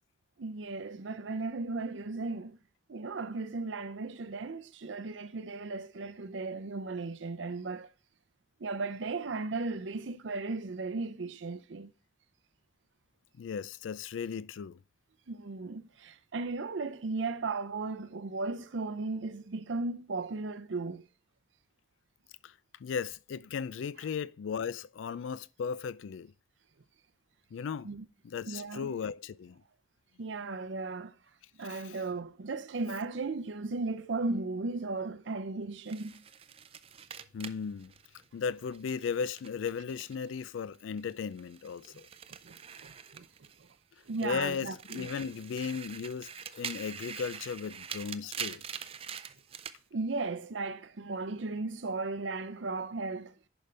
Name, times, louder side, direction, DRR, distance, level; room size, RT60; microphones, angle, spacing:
voice 1, 0.4-2.6 2.9-7.9 8.6-11.9 15.3-21.1 27.8-28.1 28.5-28.9 30.2-31.2 31.6-36.2 42.3-43.5 44.1-45.1 49.9-53.3, right 3 dB, 75° right, 0.6 m, -36 dB
voice 2, 13.4-14.8 22.4-22.5 22.8-26.3 27.5-27.9 28.2-29.6 31.7-31.9 37.3-37.9 38.3-42.1 44.2-48.6, left 6 dB, 85° left, 0.4 m, -36 dB
sound 1, 35.9-40.4 40.7-43.7 44.1-49.8, right 8 dB, 30° right, 0.4 m, -44 dB
10.5 x 5.2 x 3.3 m
head